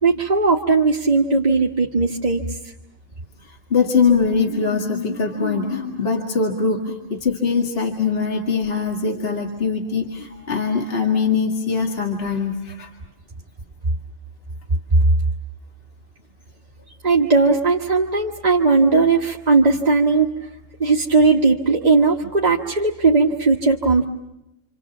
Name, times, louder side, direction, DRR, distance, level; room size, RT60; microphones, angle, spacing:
voice 1, 0.0-2.6 17.0-20.3 20.8-24.0, right 4 dB, 30° right, 0 dB, 1.3 m, -17 dB
voice 2, 3.4-12.9, left 5 dB, 40° left, 1 dB, 2.3 m, -22 dB
28.0 x 28.0 x 7.2 m, 0.92 s
omnidirectional pair, 1.5 m